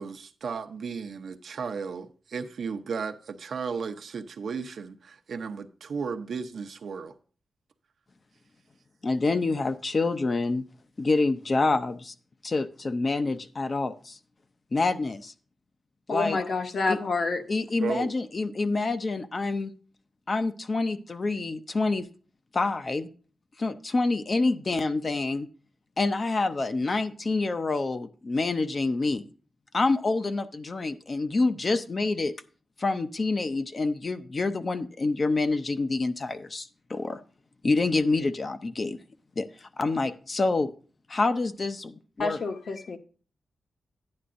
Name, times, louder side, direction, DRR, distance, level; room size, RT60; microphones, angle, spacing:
voice 1, 0.0-7.1 17.8-18.1, right 5 dB, 65° right, 0.7 m, -34 dB
voice 2, 9.0-10.6 11.0-12.1 12.4-14.2 14.7-15.3 16.1-16.4 16.9-17.0 17.5-19.7 20.3-22.1 22.5-23.1 23.6-25.5 26.0-29.3 29.7-32.3 32.8-37.2 37.6-39.0 39.4-40.7 41.1-42.4, left 3 dB, 30° left, 0.6 m, -27 dB
voice 3, 16.1-17.4 42.2-43.0, left 3 dB, 50° left, 1.0 m, -28 dB
11.0 x 9.6 x 2.5 m
wide cardioid pair, 165°, 0 cm